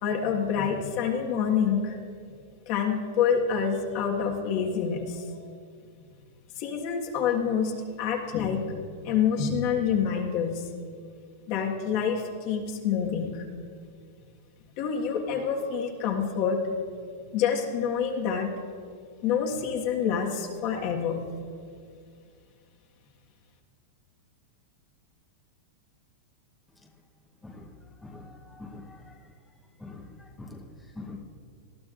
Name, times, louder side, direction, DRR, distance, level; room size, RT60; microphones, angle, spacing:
voice 1, 0.0-2.0 2.7-5.4 6.6-7.7 8.0-8.6 9.0-10.7 11.5-13.4 14.8-16.6 17.3-18.5 19.2-21.2, left 7 dB, 50° left, 1 dB, 1.6 m, -27 dB
voice 2, 28.0-29.2 29.8-31.2, left 2 dB, 5° left, 0 dB, 1.0 m, -44 dB
19.0 x 12.5 x 2.6 m, 2.2 s
hypercardioid pair, 130°, 0 cm